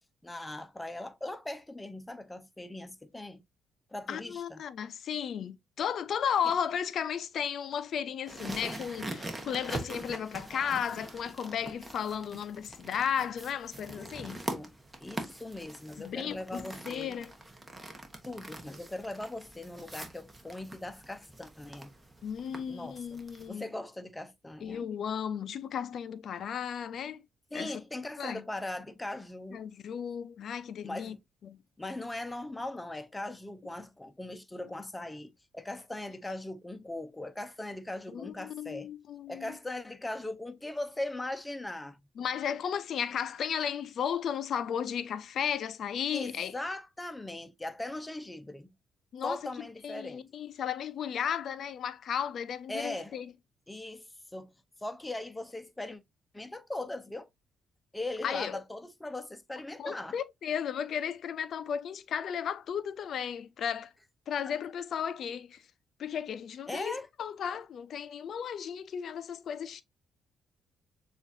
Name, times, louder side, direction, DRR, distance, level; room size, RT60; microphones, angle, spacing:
voice 1, 0.2-3.4 3.9-4.6 14.0-14.1 14.5-14.7 15.0-17.2 18.3-21.9 22.7-23.0 23.5-24.9 27.5-29.7 30.8-31.2 31.8-38.9 39.3-42.0 46.1-48.7 49.2-50.2 52.7-53.1 53.7-54.5 54.8-56.0 56.3-57.3 57.9-60.2 66.7-67.1, left 2 dB, 10° left, 0.7 m, -39 dB
voice 2, 4.1-14.4 16.0-17.3 22.2-23.7 24.6-27.2 27.5-27.8 28.2-28.4 29.5-31.2 31.4-31.6 38.1-39.6 42.2-46.5 49.1-53.3 58.2-58.6 59.8-63.9 64.3-65.6 66.0-69.8, left 8 dB, 65° left, 0.5 m, -34 dB
sound 1, 8.3-23.5, right 1 dB, 15° right, 1.1 m, -43 dB
6.7 x 2.5 x 2.7 m
cardioid pair, 90°, 0 cm